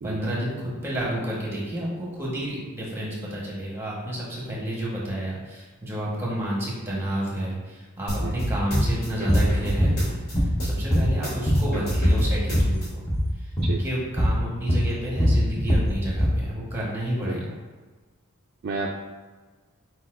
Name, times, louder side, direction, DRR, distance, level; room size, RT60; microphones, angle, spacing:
voice 1, 0.0-13.0 13.4-13.5 13.8-17.5, right 1 dB, 10° right, -5 dB, 1.2 m, -30 dB
sound 1, 8.1-10.3 10.6-12.9, equal, 45° left, 1.1 m, -29 dB
sound 2, 8.7-8.9 9.3-9.5 9.8-10.6 10.9-12.7 13.0-13.3 13.6-13.8 14.2-14.4 14.7-16.4, equal, 15° left, 0.7 m, -21 dB
voice 2, 18.6-18.9, right 3 dB, 45° right, -2 dB, 0.3 m, -31 dB
4.5 x 4.0 x 2.5 m, 1.3 s
head